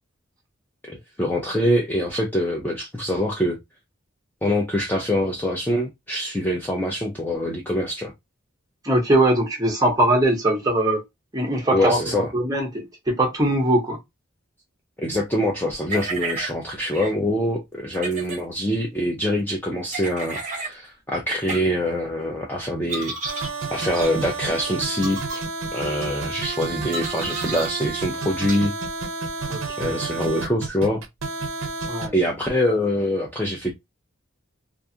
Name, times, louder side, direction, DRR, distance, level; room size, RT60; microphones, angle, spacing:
voice 1, 0.8-3.6 4.4-8.1 11.7-12.3 15.0-23.4 23.7-25.4 25.7-28.7 29.8-31.0 32.1-33.7, equal, 10° left, 0.4 m, -24 dB
voice 2, 8.8-11.0 11.3-14.0 29.5-30.0 31.9-32.1, right 1 dB, 15° right, 0.8 m, -21 dB
sound 1, 15.9-16.5 16.9-17.1 17.9-18.4 19.9-20.7 21.5-21.6 22.9-23.5 23.9-24.1 24.9-25.4 26.9-27.7 28.5-28.6, right 3 dB, 35° right, 1.0 m, -31 dB
sound 2, 23.2-32.1, right 4 dB, 65° right, 0.5 m, -30 dB
2.5 x 2.4 x 2.7 m
head